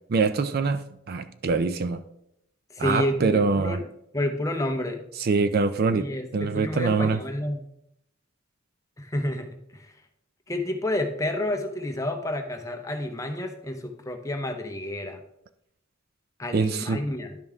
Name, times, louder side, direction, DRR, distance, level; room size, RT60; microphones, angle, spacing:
voice 1, 0.1-2.0 2.8-3.8 5.2-6.1 6.3-7.2 16.5-17.0, right 4 dB, 50° right, 11 dB, 0.4 m, -24 dB
voice 2, 2.7-3.8 4.1-5.0 5.9-7.7 9.0-9.9 10.5-15.2 16.4-17.4, left 1 dB, 15° left, 5 dB, 0.7 m, -30 dB
11.0 x 5.4 x 3.5 m, 0.79 s
head